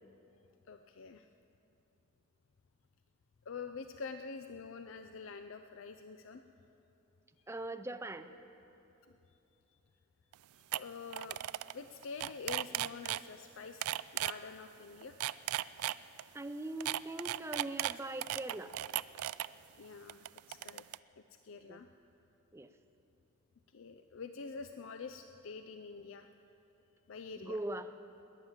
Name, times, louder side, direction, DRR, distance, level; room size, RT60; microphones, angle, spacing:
voice 1, 0.7-1.3 3.5-6.4 10.7-11.4 11.7-13.9 14.1-15.2 19.8-20.8 21.4-21.9 23.7-26.3 27.1-27.6, left 5 dB, 65° left, 8 dB, 0.4 m, -46 dB
voice 2, 7.5-8.3 16.3-18.7 21.7-21.8 22.5-22.7 27.4-27.9, right 2 dB, 10° right, 10 dB, 0.4 m, -41 dB
sound 1, 10.3-10.4 10.7-10.8 11.1-11.7 12.0-13.2 13.8-14.3 15.0-16.2 16.8-19.5 20.1-21.0, right 13 dB, 90° right, 0.3 m, -36 dB
21.0 x 8.9 x 7.2 m, 3.0 s
head